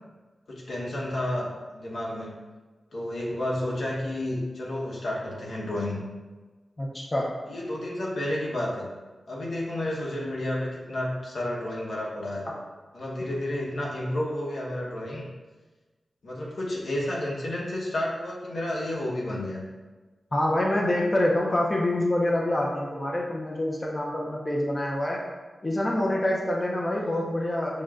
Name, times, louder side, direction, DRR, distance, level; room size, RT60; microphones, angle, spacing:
voice 1, 0.5-2.4 2.9-6.0 7.5-8.9 9.3-12.5 12.9-15.3 16.2-19.6 27.0-27.1, left 1 dB, 80° left, -4 dB, 0.9 m, -31 dB
voice 2, 6.8-7.3 20.3-25.3 25.6-27.8, left 1 dB, 25° left, -2 dB, 0.4 m, -26 dB
6.3 x 2.1 x 2.3 m, 1.3 s
wide cardioid pair, 120°, 0 cm